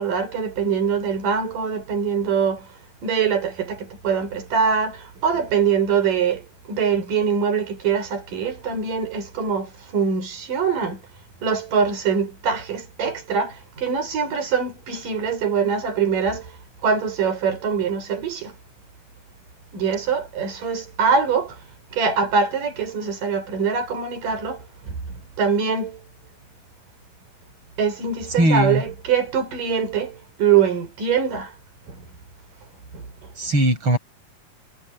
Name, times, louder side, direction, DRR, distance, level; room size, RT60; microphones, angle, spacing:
voice 1, 0.0-2.7 3.0-11.0 11.4-16.5 16.8-18.5 19.7-21.6 21.9-26.0 27.8-31.5 31.9-32.0 32.9-33.1, right 6 dB, 70° right, 6.9 m, -23 dB
voice 2, 28.4-28.8 33.4-34.0, right 1 dB, 35° right, 8.7 m, -19 dB
omnidirectional pair, 4.0 m